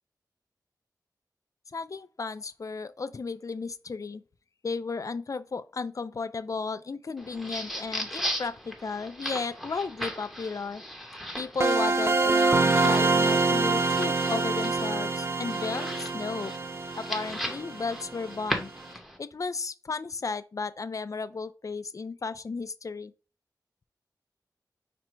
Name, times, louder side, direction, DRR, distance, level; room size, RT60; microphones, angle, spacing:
voice 1, 1.7-4.2 4.6-10.8 11.4-16.5 16.9-18.7 19.2-23.1, left 4 dB, 50° left, 0.4 m, -34 dB
sound 1, 7.2-19.2, equal, ahead, 0.8 m, -38 dB
sound 2, 11.6-18.3, right 3 dB, 35° right, 0.4 m, -25 dB
4.9 x 2.2 x 4.4 m
wide cardioid pair, 75°, 7 cm